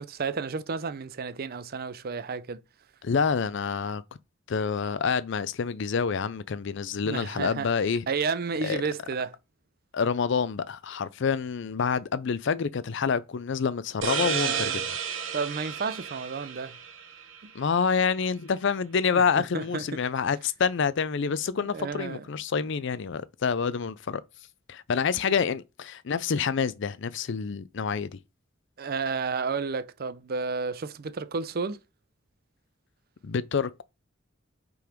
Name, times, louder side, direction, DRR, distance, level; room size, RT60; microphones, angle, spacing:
voice 1, 0.0-2.6 7.0-7.7 8.1-9.4 14.2-14.8 15.3-16.8 17.4-17.5 19.1-20.0 21.7-22.2 28.8-31.8, right 5 dB, 50° right, 0.5 m, -32 dB
voice 2, 3.0-4.0 4.5-8.0 8.6-8.8 9.9-14.8 17.5-24.2 24.7-28.2 33.2-33.8, left 6 dB, 60° left, 0.5 m, -27 dB
sound 1, 14.0-17.5, right 7 dB, 70° right, 1.0 m, -32 dB
5.5 x 3.9 x 5.0 m
head